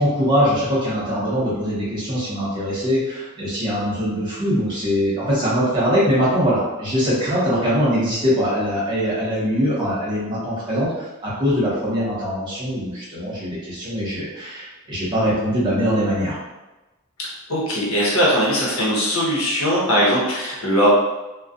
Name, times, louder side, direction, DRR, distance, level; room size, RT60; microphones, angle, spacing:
voice 1, 0.0-16.4, equal, 20° right, -9 dB, 1.0 m, -22 dB
voice 2, 17.5-20.9, equal, 75° left, -4 dB, 0.8 m, -20 dB
2.3 x 2.1 x 2.5 m, 1.1 s
head